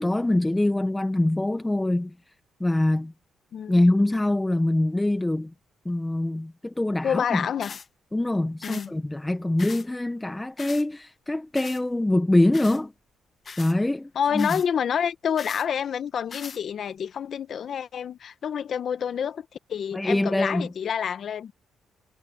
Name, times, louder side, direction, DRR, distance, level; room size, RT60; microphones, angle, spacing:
voice 1, 0.0-2.1 2.6-3.1 3.7-5.5 5.8-7.5 8.1-12.9 13.6-14.6 19.9-20.7, left 1 dB, 10° left, 1.1 m, -24 dB
voice 2, 7.0-7.8 8.6-9.0 14.1-21.5, left 8 dB, 60° left, 1.3 m, -28 dB
sound 1, 7.6-7.9 8.6-8.9 9.6-9.9 10.6-10.8 11.6-11.8 12.5-12.8 13.4-13.8 14.4-14.7 15.4-15.7 16.3-16.6, left 5 dB, 40° left, 1.5 m, -40 dB
cardioid pair, 90°, 0 cm